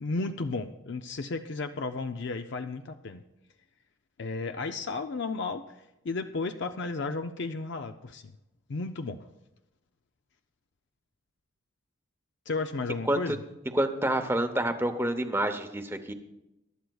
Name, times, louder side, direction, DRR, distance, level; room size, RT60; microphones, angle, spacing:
voice 1, 0.0-3.2 4.2-5.7 6.0-8.3 8.7-9.3 12.5-13.4, left 3 dB, 55° left, 8 dB, 0.5 m, -33 dB
voice 2, 13.7-16.1, right 1 dB, 10° right, 7 dB, 0.7 m, -28 dB
22.5 x 11.5 x 2.3 m, 0.92 s
head